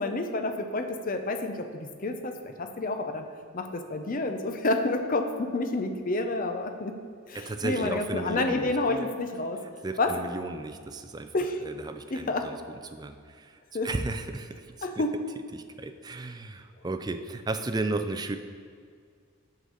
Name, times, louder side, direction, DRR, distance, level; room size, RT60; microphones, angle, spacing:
voice 1, 0.0-3.3 3.5-6.9 7.3-9.6 10.0-10.1 11.3-11.6 12.1-12.5 13.7-13.9 14.8-15.1, left 2 dB, 40° left, 6 dB, 0.6 m, -29 dB
voice 2, 7.3-9.1 9.8-11.3 11.6-15.0 15.5-18.4, right 2 dB, 20° right, 7 dB, 0.3 m, -34 dB
8.1 x 3.9 x 6.4 m, 2.1 s
head